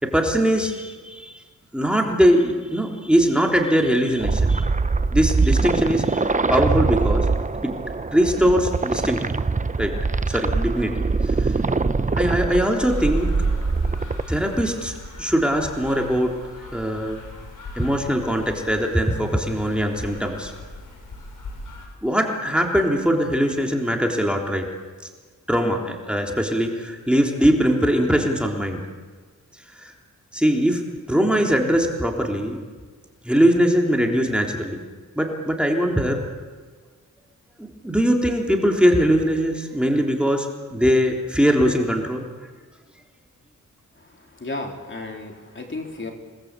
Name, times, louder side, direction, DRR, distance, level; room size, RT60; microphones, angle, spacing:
voice 1, 0.0-1.3 1.7-4.6 5.1-7.3 7.6-7.7 8.1-9.2 9.8-9.9 10.3-10.9 11.3-11.5 12.1-13.3 14.3-16.3 16.7-17.2 17.8-20.5 22.0-24.6 25.5-28.8 29.8-29.9 30.3-32.6 33.2-34.8 35.2-36.2 37.6-42.2, equal, 5° right, 1 dB, 3.6 m, -21 dB
sound 1, 4.2-14.2, right 3 dB, 25° right, 1.0 m, -23 dB
sound 2, 12.8-21.9, left 2 dB, 80° left, 6.7 m, -40 dB
voice 2, 44.1-46.1, left 2 dB, 40° left, 2 dB, 4.0 m, -33 dB
27.5 x 20.0 x 8.4 m, 1.5 s
cardioid pair, 75°, 31 cm